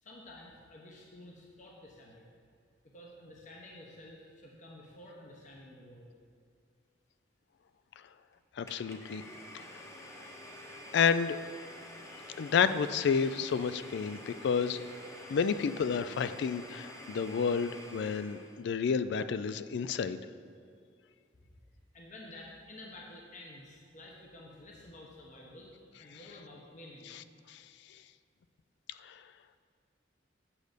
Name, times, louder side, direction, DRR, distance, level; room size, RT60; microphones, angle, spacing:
voice 1, 0.0-2.2 2.8-6.1 21.9-25.7 26.0-27.1, left 1 dB, 45° left, -2 dB, 0.9 m, -51 dB
voice 2, 8.6-9.2 9.5-9.6 10.9-11.4 12.4-14.8 15.3-20.2 27.5-27.6 29.0-29.1, left 6 dB, 65° left, 13 dB, 0.3 m, -30 dB
Domestic sounds home sounds, 8.7-18.6, left 1 dB, 15° left, 0.9 m, -49 dB
8.5 x 6.5 x 5.1 m, 2.3 s
head